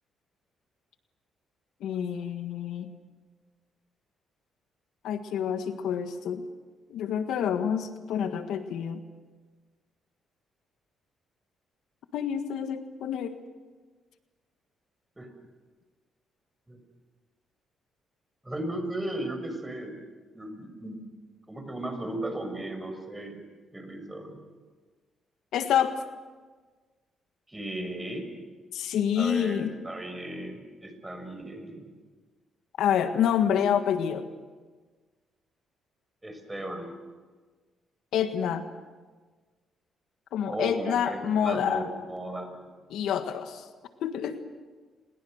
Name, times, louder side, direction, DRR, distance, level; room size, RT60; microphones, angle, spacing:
voice 1, 1.8-2.9 5.0-6.4 6.9-9.0 12.1-13.4 25.5-26.0 28.7-29.7 32.8-34.3 38.1-38.6 40.3-41.8 42.9-43.7 44.0-44.4, left 8 dB, 80° left, 8 dB, 1.6 m, -27 dB
voice 2, 18.4-20.0 20.3-21.0 21.5-23.4 23.7-24.4 27.5-28.3 29.2-31.9 36.2-36.9 40.5-42.6, right 1 dB, 10° right, 6 dB, 5.9 m, -36 dB
29.5 x 21.5 x 6.5 m, 1.4 s
cardioid pair, 90°, 0 cm